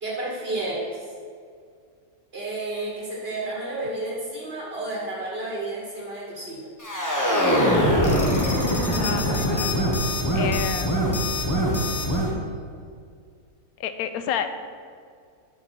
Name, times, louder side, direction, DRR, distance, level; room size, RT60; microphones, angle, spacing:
voice 1, 0.0-1.1 2.3-6.7 9.2-9.4, right 2 dB, 45° right, -5 dB, 1.8 m, -31 dB
sound 1, 6.8-12.3, equal, 15° left, 1.1 m, -22 dB
voice 2, 8.9-9.7 10.3-11.1 13.8-14.5, left 8 dB, 90° left, 10 dB, 1.1 m, -30 dB
9.4 x 6.5 x 4.4 m, 2.2 s
omnidirectional pair, 1.5 m